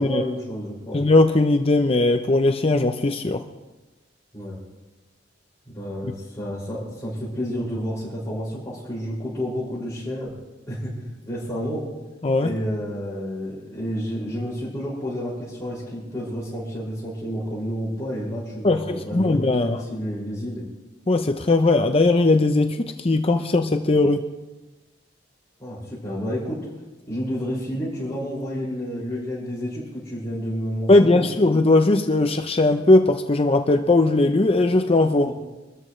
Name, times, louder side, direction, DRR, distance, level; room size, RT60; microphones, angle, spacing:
voice 1, 0.0-1.0 4.3-4.6 5.7-10.3 10.7-11.9 12.4-20.6 25.6-26.6 27.1-31.4 35.2-35.3, equal, 15° left, -10 dB, 5.8 m, -30 dB
voice 2, 0.9-3.4 12.2-12.5 18.6-19.8 21.1-24.3 30.9-35.3, left 2 dB, 30° left, 6 dB, 0.6 m, -19 dB
25.5 x 13.5 x 3.3 m, 1.1 s
head